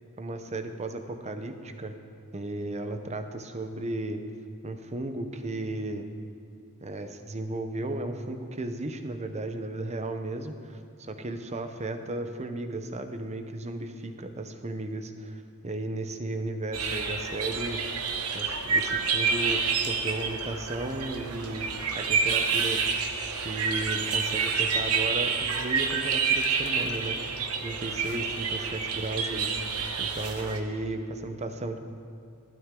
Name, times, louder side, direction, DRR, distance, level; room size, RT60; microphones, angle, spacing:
voice 1, 0.2-1.9 2.3-4.2 4.6-6.1 6.8-17.8 18.3-21.7 22.0-22.9 23.4-31.8, right 2 dB, 30° right, 7 dB, 0.8 m, -35 dB
sound 1, 16.7-30.6, right 5 dB, 85° right, 1.1 m, -28 dB
16.0 x 12.5 x 3.8 m, 2.5 s
head